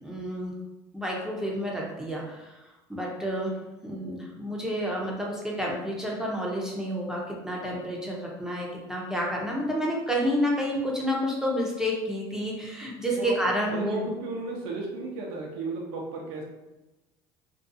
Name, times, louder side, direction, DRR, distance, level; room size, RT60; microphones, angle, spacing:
voice 1, 0.0-0.5 0.9-2.6 2.9-3.5 3.8-14.0, equal, 5° right, -3 dB, 0.6 m, -29 dB
voice 2, 13.7-16.4, right 3 dB, 80° right, -1 dB, 0.6 m, -34 dB
2.6 x 2.3 x 2.5 m, 1.0 s
supercardioid pair, 95°, 11 cm